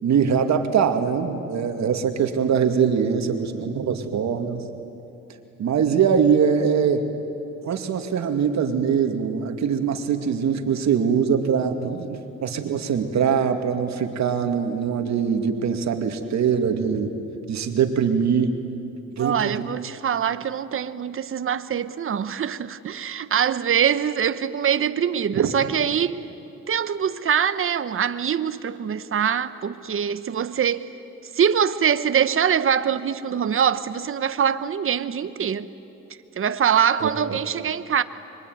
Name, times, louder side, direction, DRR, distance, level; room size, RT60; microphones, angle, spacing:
voice 1, 0.0-4.7 5.6-7.1 7.6-17.1 17.5-18.6 19.1-19.6 25.3-25.7 37.0-37.4, right 7 dB, 65° right, 2.3 m, -22 dB
voice 2, 19.2-26.2 26.7-30.9 31.3-35.7 36.4-38.0, right 8 dB, 45° right, 1.1 m, -23 dB
25.0 x 23.5 x 9.5 m
cardioid pair, 90°, 30 cm